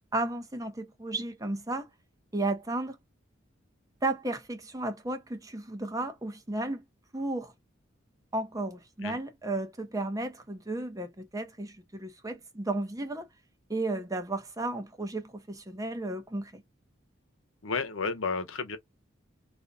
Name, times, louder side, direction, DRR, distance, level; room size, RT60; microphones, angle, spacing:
voice 1, 0.1-1.9 2.3-3.0 4.0-6.8 7.1-7.5 8.3-13.3 13.7-16.6, right 2 dB, 15° right, 0.6 m, -33 dB
voice 2, 17.6-18.8, left 4 dB, 85° left, 0.9 m, -32 dB
2.5 x 2.2 x 3.8 m
head